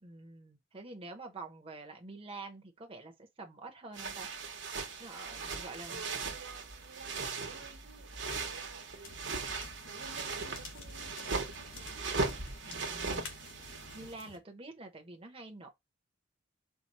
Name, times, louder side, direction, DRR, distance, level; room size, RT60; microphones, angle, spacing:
voice 1, 0.0-4.3 5.0-6.0 12.6-13.3 13.9-15.7, right 3 dB, 30° right, 0.8 m, -47 dB
sound 1, 3.9-14.1, right 4 dB, 65° right, 1.0 m, -39 dB
voice 2, 5.3-9.2 9.9-12.2, right 3 dB, 90° right, 1.0 m, -52 dB
sound 2, 9.0-14.4, left 4 dB, 80° left, 1.3 m, -51 dB
4.6 x 2.2 x 4.1 m
head